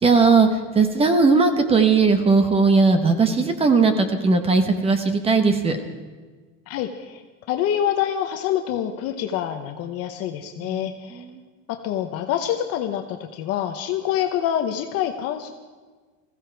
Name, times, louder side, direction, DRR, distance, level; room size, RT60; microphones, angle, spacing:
voice 1, 0.0-5.8 10.6-11.4, right 4 dB, 15° right, 8 dB, 0.9 m, -18 dB
voice 2, 6.7-7.2 7.5-11.2 11.7-15.5, left 10 dB, 40° left, 6 dB, 0.8 m, -26 dB
20.0 x 15.5 x 4.5 m, 1.4 s
cardioid pair, 170°, 37 cm